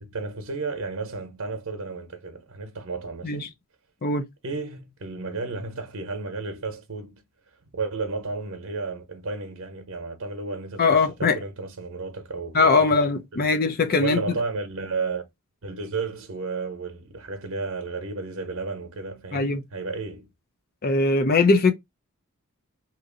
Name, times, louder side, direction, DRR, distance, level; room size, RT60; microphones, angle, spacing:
voice 1, 0.0-3.5 4.4-7.2 7.7-13.0 13.3-13.5 14.0-15.3 15.6-20.3, right 4 dB, 65° right, 0.9 m, -33 dB
voice 2, 10.8-11.4 12.5-14.2 19.3-19.6 20.8-21.7, left 3 dB, 45° left, 0.6 m, -20 dB
2.9 x 2.6 x 3.8 m
head